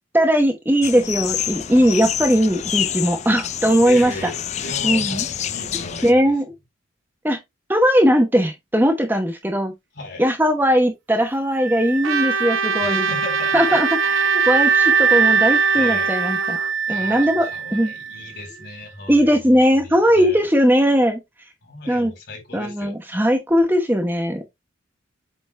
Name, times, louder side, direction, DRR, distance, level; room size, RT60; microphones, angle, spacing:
voice 1, 0.1-4.1 4.8-5.2 6.0-6.5 7.2-7.4 7.7-9.7 10.2-13.1 13.5-16.6 16.9-17.9 19.1-21.2 21.9-22.1 22.5-24.4, equal, 10° right, 1.0 m, -19 dB
sound 1, 0.8-6.1, left 9 dB, 35° left, 0.4 m, -27 dB
voice 2, 3.8-6.3 9.9-10.2 12.8-13.8 15.7-16.1 16.9-20.5 21.6-22.9, left 2 dB, 55° left, 4.0 m, -36 dB
sound 2, 11.6-18.4, right 6 dB, 65° right, 0.5 m, -22 dB
Trumpet, 12.0-16.7, right 4 dB, 85° right, 0.8 m, -24 dB
8.0 x 4.0 x 3.3 m
head